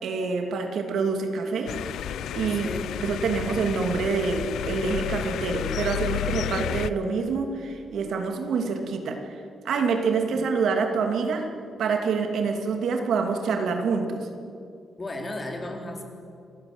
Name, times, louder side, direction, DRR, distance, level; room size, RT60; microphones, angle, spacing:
voice 1, 0.0-1.7 2.3-2.7 3.0-11.5 11.8-14.3, right 4 dB, 75° right, 4 dB, 2.8 m, -26 dB
sound 1, 1.7-6.9, left 10 dB, 90° left, 0.6 m, -31 dB
voice 2, 2.5-3.0 10.3-10.4 15.0-16.0, left 1 dB, 25° left, 2 dB, 3.7 m, -35 dB
27.5 x 16.0 x 8.1 m, 2.6 s
cardioid pair, 125°, 0 cm